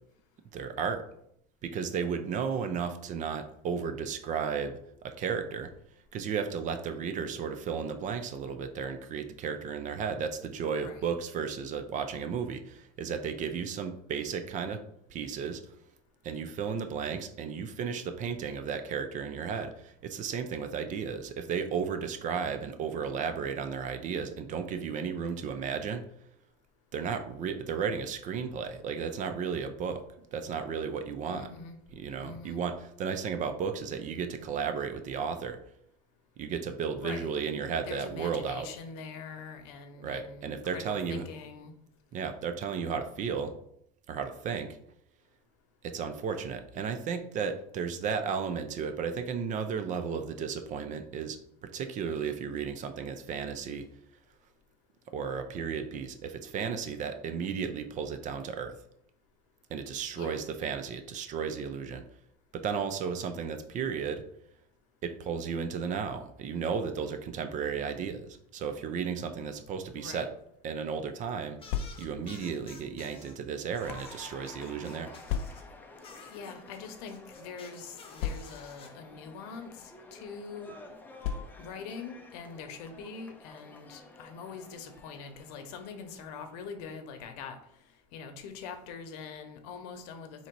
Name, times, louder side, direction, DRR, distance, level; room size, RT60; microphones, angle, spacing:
voice 1, 0.5-1.0 1.6-5.7 6.1-14.8 15.1-15.6 16.2-26.0 26.9-31.5 31.9-35.6 36.4-38.7 40.0-41.3 42.1-43.5 44.1-44.8 45.8-53.9 55.1-58.7 59.7-62.0 62.5-64.2 65.0-70.3 70.6-71.6 72.0-75.1, right 6 dB, 40° right, 9 dB, 0.5 m, -34 dB
voice 2, 10.8-11.1 31.3-31.8 32.1-32.6 36.9-37.3 37.8-41.7 60.1-60.4 69.9-70.3 76.3-80.7 81.6-87.6 88.1-90.5, left 5 dB, 80° left, 7 dB, 0.8 m, -43 dB
sound 1, 71.6-73.3 73.7-75.6 76.0-78.9, left 4 dB, 25° left, 0.9 m, -52 dB
sound 2, 71.7-72.3 73.1-74.1 75.3-75.9 76.7-76.9 77.2-77.3 78.2-78.8 79.7-79.9 81.2-81.8, left 8 dB, 60° left, 0.4 m, -36 dB
Cheering / Applause, 73.8-87.2, left 2 dB, 10° left, 0.5 m, -52 dB
3.8 x 2.8 x 4.5 m, 0.73 s
supercardioid pair, 130°, 21 cm